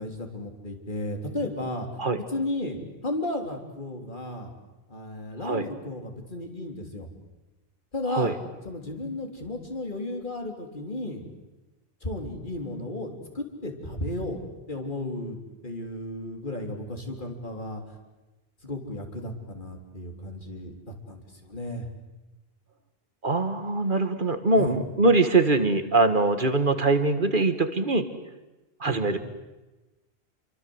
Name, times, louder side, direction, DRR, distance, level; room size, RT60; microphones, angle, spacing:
voice 1, 0.0-1.9 2.3-4.5 4.9-7.1 7.9-8.4 8.6-11.2 12.0-14.4 14.7-17.8 18.6-21.9 24.6-24.8 28.8-29.0, left 1 dB, 50° left, 3 dB, 3.7 m, -34 dB
voice 2, 23.2-28.1 28.8-29.2, right 3 dB, 55° right, 10 dB, 1.9 m, -23 dB
28.0 x 24.0 x 7.9 m, 1.1 s
omnidirectional pair, 1.0 m